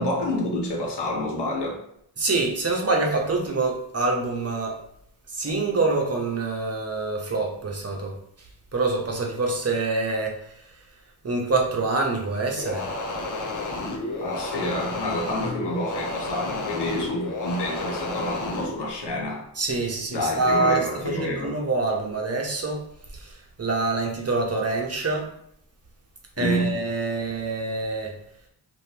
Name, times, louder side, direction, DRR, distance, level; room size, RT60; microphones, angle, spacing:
voice 1, 0.0-1.8 14.2-19.5 20.1-21.6 26.4-26.8, left 1 dB, 65° left, -1 dB, 1.1 m, -28 dB
voice 2, 2.2-4.8 5.3-8.1 8.7-10.4 11.2-12.9 19.6-22.8 23.1-25.3 26.4-28.1, right 3 dB, 35° right, 0 dB, 0.9 m, -25 dB
sound 1, 12.6-18.7, left 2 dB, 45° left, 0.8 m, -31 dB
3.6 x 2.5 x 2.9 m, 0.72 s
cardioid pair, 60°, 43 cm